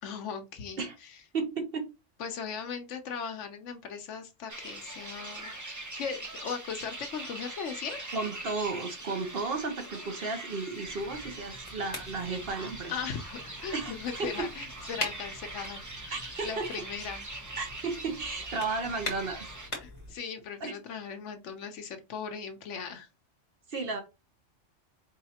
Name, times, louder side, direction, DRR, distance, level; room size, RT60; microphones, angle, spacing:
voice 1, 0.0-1.2 2.2-8.1 12.9-17.3 19.8-23.1, left 6 dB, 75° left, 1.0 m, -38 dB
voice 2, 1.3-1.9 8.1-12.9 13.7-13.9 14.2-14.5 16.1-16.7 17.6-19.5 20.6-20.8 23.7-24.0, right 3 dB, 55° right, 1.0 m, -33 dB
sound 1, 4.5-19.7, right 2 dB, 20° right, 0.5 m, -42 dB
sound 2, 10.8-20.1, left 1 dB, 25° left, 1.5 m, -43 dB
4.8 x 3.1 x 2.8 m
omnidirectional pair, 1.3 m